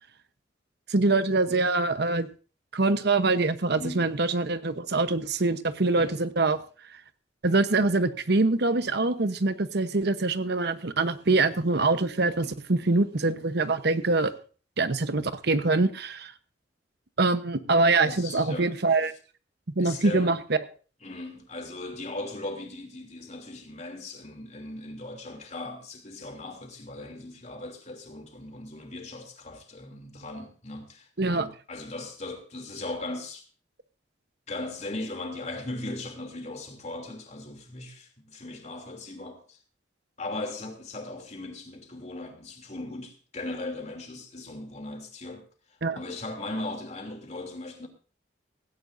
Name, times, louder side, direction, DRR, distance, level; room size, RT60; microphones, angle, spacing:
voice 1, 0.9-2.3 2.7-6.6 7.4-14.3 14.8-16.3 17.2-19.1 19.7-20.6 31.2-31.5 45.8-46.0, right 3 dB, 65° right, 1.0 m, -24 dB
voice 2, 3.8-4.2 6.0-6.2 12.4-12.5 18.0-18.7 19.8-20.4 21.0-33.5 34.5-39.6 40.2-45.4 45.9-47.9, left 2 dB, 40° left, 3.0 m, -38 dB
16.5 x 16.5 x 2.7 m
head